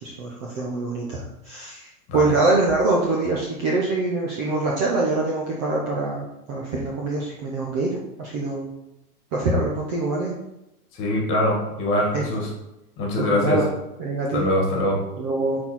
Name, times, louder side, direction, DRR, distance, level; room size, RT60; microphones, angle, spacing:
voice 1, 0.0-1.9 2.1-7.9 8.2-8.7 9.3-10.3 12.1-12.2 13.2-13.6 14.0-14.4 15.2-15.6, right 3 dB, 20° right, -3 dB, 0.5 m, -24 dB
voice 2, 11.0-12.5 13.0-13.6 14.3-15.0, left 1 dB, 25° left, -1 dB, 1.8 m, -23 dB
5.8 x 4.2 x 4.4 m, 0.91 s
hypercardioid pair, 150°, 47 cm